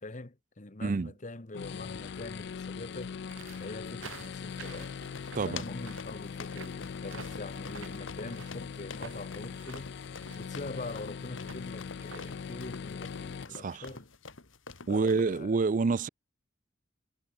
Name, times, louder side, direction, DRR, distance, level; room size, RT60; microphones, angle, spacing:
voice 1, 0.0-3.1 3.6-5.0 5.4-9.9 10.4-14.1 14.9-15.5, left 2 dB, 40° left, 1.2 m, -43 dB
voice 2, 0.8-1.1 5.3-5.6 13.5-13.9 14.9-16.1, right 4 dB, 40° right, 0.4 m, -28 dB
sound 1, 1.5-13.4, left 6 dB, 60° left, 0.4 m, -41 dB
sound 2, 3.3-12.3, right 5 dB, 90° right, 1.4 m, -50 dB
sound 3, 4.8-15.4, left 4 dB, 90° left, 2.5 m, -47 dB
head